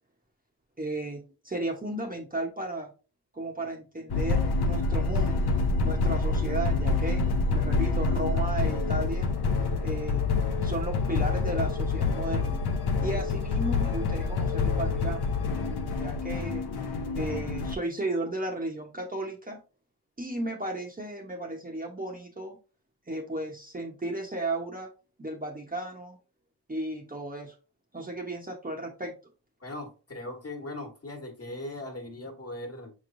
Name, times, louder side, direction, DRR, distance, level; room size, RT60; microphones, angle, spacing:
voice 1, 0.8-2.9 3.3-5.5 5.8-9.3 9.8-10.3 10.6-12.6 13.0-15.3 15.9-16.7 17.2-19.6 20.2-22.6 23.1-24.9 25.2-26.2 26.7-27.5 27.9-29.1, right 1 dB, 20° right, 0.9 m, -34 dB
sound 1, 4.1-17.8, left 3 dB, 65° left, 0.7 m, -27 dB
voice 2, 29.6-32.9, left 1 dB, 35° left, 1.4 m, -39 dB
5.6 x 3.1 x 2.6 m
cardioid pair, 70°, 42 cm